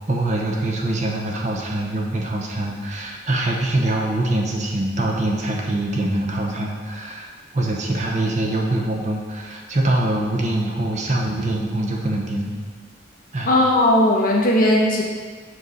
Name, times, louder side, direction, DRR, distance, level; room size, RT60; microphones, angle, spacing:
voice 1, 0.1-12.6 13.3-13.5, right 1 dB, 40° right, -1 dB, 0.8 m, -24 dB
voice 2, 13.4-15.0, left 1 dB, 45° left, -2 dB, 1.0 m, -17 dB
5.5 x 5.4 x 4.0 m, 1.5 s
head